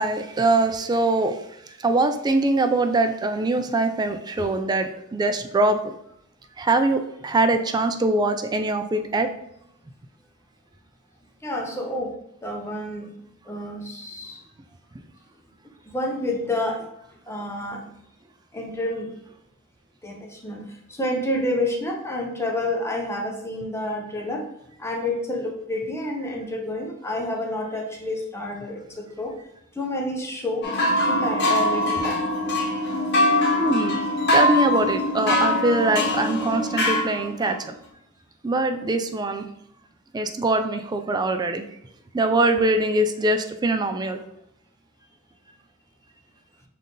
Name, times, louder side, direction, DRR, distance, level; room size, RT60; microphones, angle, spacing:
voice 1, 0.0-1.4 1.8-5.9 6.6-9.3 33.6-34.0 34.3-37.8 38.4-39.5 40.1-41.7 42.1-44.2, right 2 dB, 20° right, 7 dB, 0.3 m, -23 dB
voice 2, 11.4-12.1 12.4-13.1 13.5-14.4 15.9-16.8 17.3-17.8 18.5-19.1 20.0-20.6 21.0-24.5 24.8-29.3 29.8-30.6 31.1-32.2, left 1 dB, 10° left, 1 dB, 0.7 m, -29 dB
sound 1, 30.6-37.5, left 1 dB, 55° left, 1.0 m, -22 dB
5.5 x 2.6 x 3.8 m, 0.78 s
head